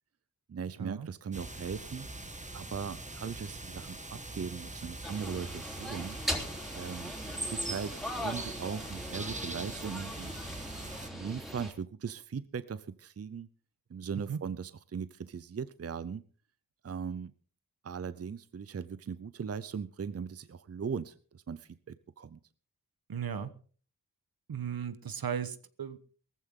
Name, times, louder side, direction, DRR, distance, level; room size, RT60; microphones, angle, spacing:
voice 1, 0.5-2.1 2.5-6.2 6.7-10.3 11.1-13.5 13.9-16.2 16.8-17.3 17.8-22.4, right 6 dB, 40° right, 15 dB, 0.6 m, -39 dB
sound 1, 1.3-11.1, right 2 dB, 20° right, 1.8 m, -42 dB
sound 2, 5.0-11.7, equal, ahead, 3.5 m, -40 dB
voice 2, 23.1-23.5 24.5-26.0, right 7 dB, 70° right, 13 dB, 1.2 m, -36 dB
18.5 x 14.5 x 3.8 m, 0.42 s
wide cardioid pair, 105°, 37 cm